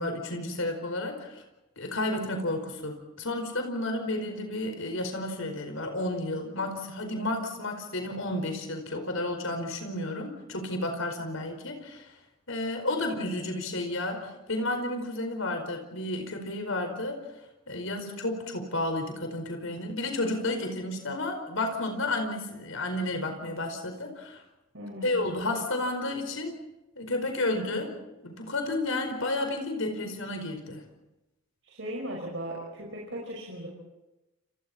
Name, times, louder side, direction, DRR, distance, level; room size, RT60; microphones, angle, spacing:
voice 1, 0.0-1.4 1.8-12.1 12.5-17.2 17.7-24.4 25.0-26.6 27.0-27.9 28.2-30.8, left 2 dB, 80° left, 5 dB, 4.9 m, -31 dB
voice 2, 24.7-25.2 31.6-33.7, right 1 dB, 60° right, -3 dB, 5.7 m, -37 dB
29.5 x 29.5 x 4.4 m, 0.98 s
head